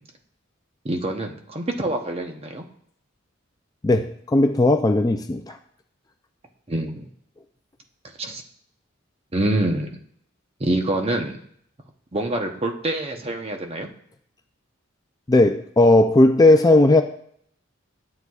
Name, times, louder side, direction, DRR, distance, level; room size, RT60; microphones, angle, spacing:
voice 1, 0.8-2.6 6.7-7.1 8.2-8.4 9.3-10.0 10.6-11.4 12.1-13.9, right 1 dB, 30° right, 3 dB, 0.8 m, -26 dB
voice 2, 3.8-5.6 15.3-17.0, left 2 dB, 20° left, 6 dB, 0.4 m, -16 dB
12.0 x 7.7 x 2.4 m, 0.65 s
head